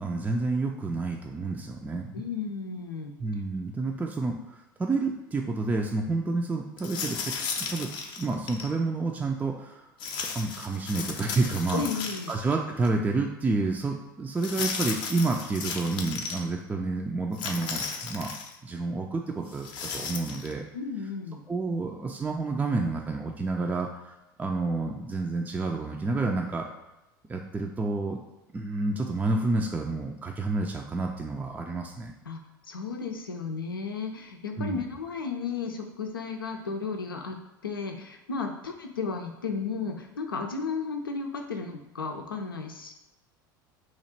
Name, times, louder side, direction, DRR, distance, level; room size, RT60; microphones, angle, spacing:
voice 1, 0.0-2.1 3.2-7.2 7.6-7.9 8.2-9.9 10.3-11.8 12.3-18.3 18.6-20.6 21.5-26.6 27.3-28.2 28.5-32.1 34.6-34.8, right 3 dB, 15° right, 1 dB, 0.4 m, -29 dB
voice 2, 2.1-3.1 11.7-12.3 20.7-21.4 32.3-37.4 37.6-42.9, left 5 dB, 85° left, 3 dB, 0.5 m, -34 dB
sound 1, 6.8-8.7 10.0-12.5 12.8-12.9 14.4-16.4 17.3-18.5 19.5-20.5, left 5 dB, 45° left, 0.6 m, -35 dB
2.9 x 2.5 x 4.3 m, 0.96 s
figure-of-eight pair, 75°, 11 cm